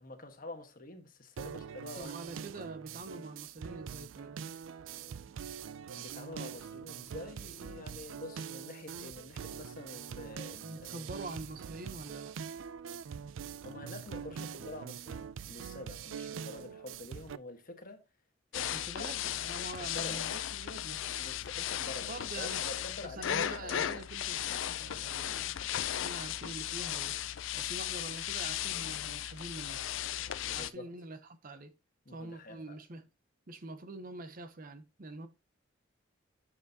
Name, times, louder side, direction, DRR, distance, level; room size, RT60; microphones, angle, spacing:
voice 1, 0.0-2.1 5.9-11.0 13.6-18.0 18.5-19.1 19.8-20.2 21.2-23.9 30.3-30.9 32.0-32.8, left 2 dB, 45° left, 1.3 m, -47 dB
sound 1, 1.4-17.4, right 7 dB, 70° right, 0.4 m, -44 dB
voice 2, 2.0-4.4 10.6-12.4 18.7-21.0 22.0-22.6 23.0-27.2 27.5-29.8 30.2-31.7 32.1-33.1 33.5-35.3, right 2 dB, 45° right, 0.7 m, -45 dB
sound 2, 18.5-30.7, left 11 dB, 70° left, 0.4 m, -36 dB
7.4 x 6.6 x 2.7 m
head